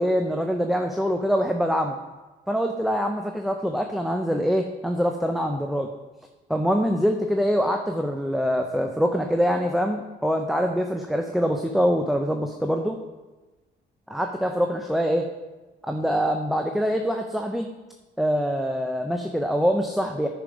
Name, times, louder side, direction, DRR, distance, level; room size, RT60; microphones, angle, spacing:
voice 1, 0.0-2.0 2.5-5.9 6.5-13.0 14.1-15.3 15.8-17.7 18.2-20.3, equal, ahead, 3 dB, 0.6 m, -24 dB
9.4 x 5.1 x 5.1 m, 1.2 s
cardioid pair, 90°, 20 cm